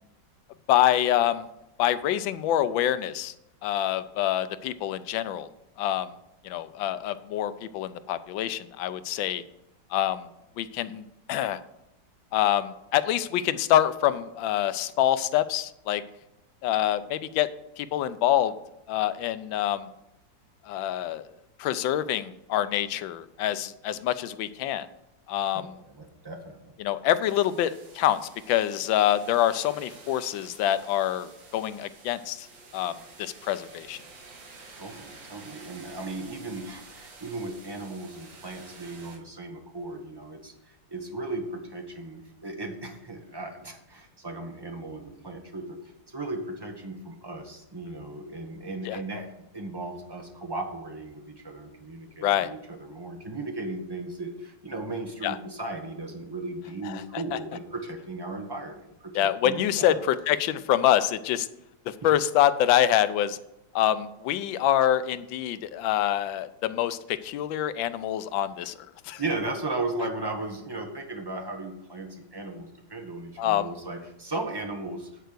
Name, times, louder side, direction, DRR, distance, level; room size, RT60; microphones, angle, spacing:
voice 1, 0.7-1.5 1.8-3.3 3.6-5.5 5.8-6.1 6.4-9.4 9.9-10.3 10.6-11.6 12.3-16.0 16.6-17.5 17.8-18.5 18.9-19.9 20.7-21.2 21.6-24.9 25.3-25.7 26.8-28.2 28.5-32.5 32.7-32.9 33.2-34.0 48.9-49.0 52.2-52.5 55.2-55.4 56.9-57.2 59.1-61.5 61.9-63.4 63.7-68.7 69.0-69.2 73.4-73.7, left 12 dB, 85° left, 13 dB, 1.3 m, -26 dB
voice 2, 25.5-26.7 34.7-40.5 40.9-45.8 46.1-60.0 62.0-62.1 69.2-75.1, right 2 dB, 15° right, 2 dB, 0.9 m, -36 dB
sound 1, 27.2-39.2, right 3 dB, 80° right, 2.6 m, -50 dB
9.3 x 4.5 x 6.6 m, 0.85 s
omnidirectional pair, 2.0 m